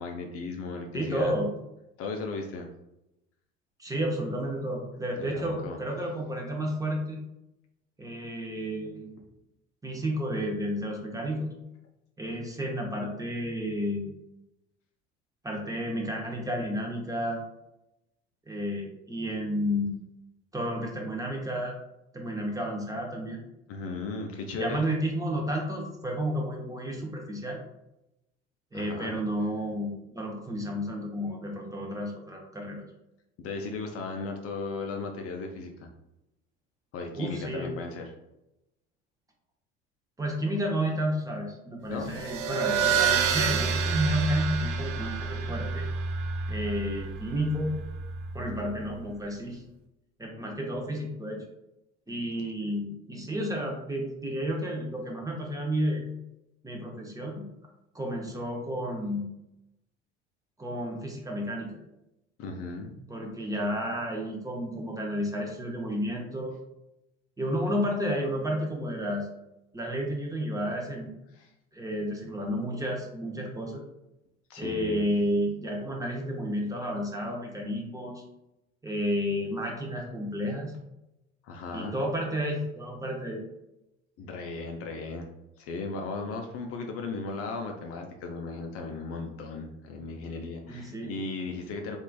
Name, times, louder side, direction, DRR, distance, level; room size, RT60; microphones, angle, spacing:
voice 1, 0.0-1.3 2.0-2.7 5.2-5.8 23.7-24.8 28.7-29.2 33.4-35.9 36.9-38.1 41.9-42.2 62.4-63.0 71.3-71.5 74.5-75.1 81.4-82.0 84.2-85.3 85.6-92.0, left 3 dB, 45° left, 3 dB, 0.5 m, -36 dB
voice 2, 0.9-1.5 3.8-7.2 8.0-9.1 9.8-11.5 12.2-14.1 15.4-17.4 18.5-19.9 20.5-21.7 22.1-23.4 24.6-27.6 28.7-32.8 37.1-37.7 40.2-45.9 46.5-47.8 48.3-49.6 50.2-51.4 52.1-56.0 56.6-57.5 57.9-59.3 60.6-61.7 63.1-66.5 67.4-69.3 69.7-71.1 71.7-73.8 74.6-78.2 78.8-80.7 81.7-83.4 90.7-91.1, equal, 10° right, 0 dB, 0.6 m, -31 dB
sound 1, 42.0-49.0, right 5 dB, 60° right, 0.5 m, -29 dB
3.1 x 2.4 x 2.2 m, 0.89 s
hypercardioid pair, 65°, 34 cm